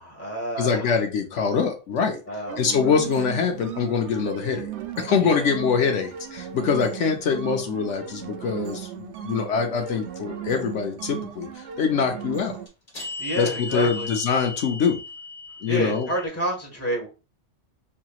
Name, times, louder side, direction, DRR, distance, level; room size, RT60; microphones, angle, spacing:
voice 1, 0.0-0.8 2.3-3.0 5.2-5.5 13.2-14.1 15.7-17.1, right 1 dB, 10° left, -2 dB, 1.6 m, -29 dB
voice 2, 0.6-2.2 2.6-4.7 5.0-12.6 13.4-15.0 15.6-16.1, left 6 dB, 75° left, 3 dB, 1.0 m, -24 dB
sound 1, 2.0-2.1 12.3-16.3, left 3 dB, 35° left, 1.3 m, -36 dB
sound 2, 2.5-12.7, right 11 dB, 70° right, 0.8 m, -37 dB
5.6 x 2.9 x 2.4 m, 0.31 s
omnidirectional pair, 1.2 m